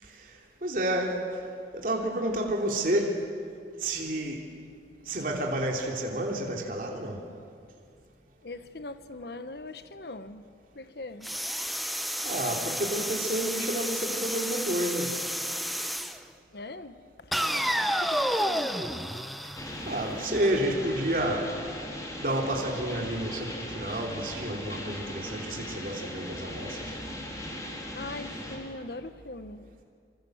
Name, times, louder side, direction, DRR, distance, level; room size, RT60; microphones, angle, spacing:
voice 1, 0.6-1.3 1.7-3.2 3.8-4.4 5.0-7.2 12.2-15.2 19.9-21.5 22.2-27.0, right 1 dB, 50° right, 3.2 m, -30 dB
voice 2, 8.4-10.5 10.7-11.4 16.5-17.3 17.9-18.7 27.9-29.8, left 2 dB, 60° left, 1.1 m, -41 dB
sound 1, 11.2-16.2 17.3-20.2, equal, ahead, 0.9 m, -31 dB
sound 2, 19.5-28.6, left 1 dB, 20° left, 3.9 m, -38 dB
26.0 x 25.5 x 8.0 m
head